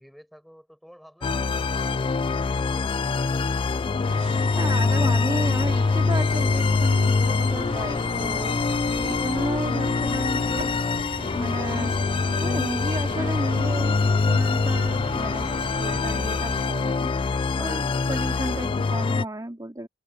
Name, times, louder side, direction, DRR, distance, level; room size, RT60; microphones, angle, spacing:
voice 1, 0.0-3.0, equal, ahead, 7.4 m, -51 dB
sound 1, 1.2-19.3, left 4 dB, 30° left, 0.3 m, -24 dB
sound 2, 4.1-16.7, right 2 dB, 45° right, 3.1 m, -38 dB
voice 2, 4.5-8.6 8.9-10.7 11.2-11.9 12.4-15.5 15.8-17.1 17.6-19.9, right 1 dB, 20° right, 2.7 m, -33 dB
head